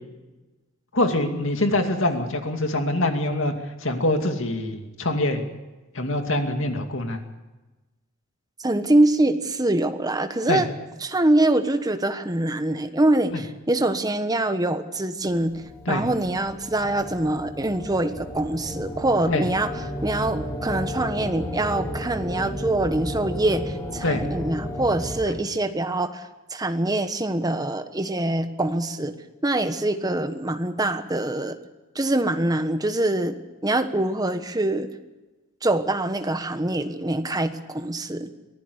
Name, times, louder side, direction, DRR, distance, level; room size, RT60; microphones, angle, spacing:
voice 1, 0.9-3.5 3.8-5.4 5.9-7.2 10.5-10.6 13.3-13.4 15.9-16.0 19.3-19.4 24.0-24.2 25.2-25.4, left 1 dB, 65° left, 5 dB, 2.5 m, -24 dB
voice 2, 8.6-10.7 11.0-15.6 15.9-19.7 20.0-29.1 29.4-31.6 31.9-33.4 33.6-34.9 35.6-38.3, right 1 dB, 20° right, 9 dB, 1.3 m, -24 dB
sound 1, 15.3-25.2, equal, 15° left, 2.4 m, -33 dB
23.5 x 15.5 x 8.1 m, 1.1 s
head